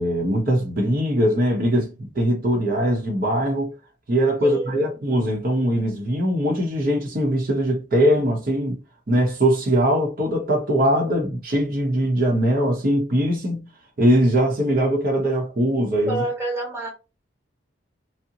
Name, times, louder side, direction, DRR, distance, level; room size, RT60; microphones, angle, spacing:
voice 1, 0.0-3.7 4.1-8.8 9.1-13.6 14.0-16.2, equal, 50° right, 0.7 m, -21 dB
voice 2, 4.4-4.9 16.1-16.9, right 2 dB, 15° right, 1.1 m, -28 dB
2.8 x 2.0 x 3.7 m
head